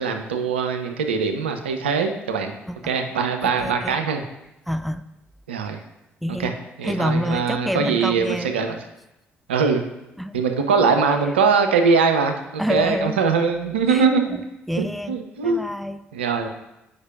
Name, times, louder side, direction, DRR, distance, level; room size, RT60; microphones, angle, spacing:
voice 1, 0.0-2.5 2.8-4.2 5.5-5.8 6.3-6.5 6.8-8.8 9.5-9.8 10.3-12.3 12.7-14.3 14.8-15.6 16.1-16.5, right 5 dB, 80° right, 6 dB, 0.4 m, -21 dB
voice 2, 3.4-4.0 4.7-5.0 6.2-6.6 6.8-8.5 10.2-10.3 12.6-13.2 13.9-15.2 15.4-16.0, equal, ahead, 12 dB, 0.3 m, -27 dB
7.9 x 5.1 x 2.3 m, 0.92 s
figure-of-eight pair, 45°, 6 cm